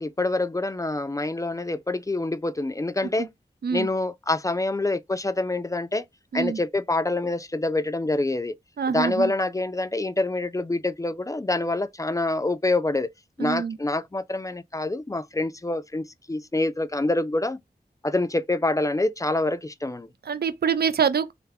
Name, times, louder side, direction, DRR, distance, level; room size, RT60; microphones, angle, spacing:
voice 1, 0.0-3.3 3.7-6.1 6.3-8.6 8.9-13.1 13.4-17.6 18.0-20.1, left 2 dB, 20° left, 0.3 m, -26 dB
voice 2, 8.8-9.3 13.4-13.8 20.3-21.3, right 6 dB, 75° right, 0.4 m, -25 dB
3.3 x 2.0 x 3.4 m
wide cardioid pair, 40°, 17 cm